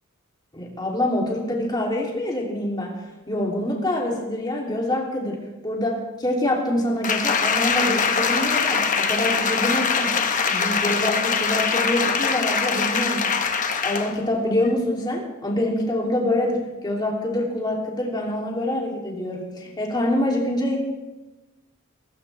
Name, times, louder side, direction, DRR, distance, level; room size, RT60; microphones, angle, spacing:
voice 1, 0.5-10.2 10.5-13.3 13.8-20.8, left 1 dB, 20° left, -2 dB, 3.0 m, -25 dB
Applause, 7.0-14.2 14.6-14.7, left 5 dB, 40° left, 1.0 m, -23 dB
17.5 x 16.5 x 3.4 m, 1.1 s
head